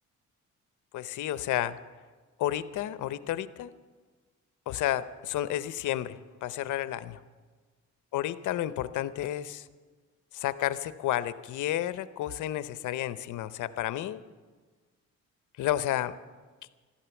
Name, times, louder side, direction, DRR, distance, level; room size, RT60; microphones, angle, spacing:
voice 1, 0.9-1.8 2.4-3.7 4.7-7.2 8.1-9.7 10.3-14.2 15.6-16.1, left 13 dB, 80° left, 14 dB, 0.8 m, -31 dB
14.5 x 12.5 x 7.1 m, 1.4 s
cardioid pair, 90°, 30 cm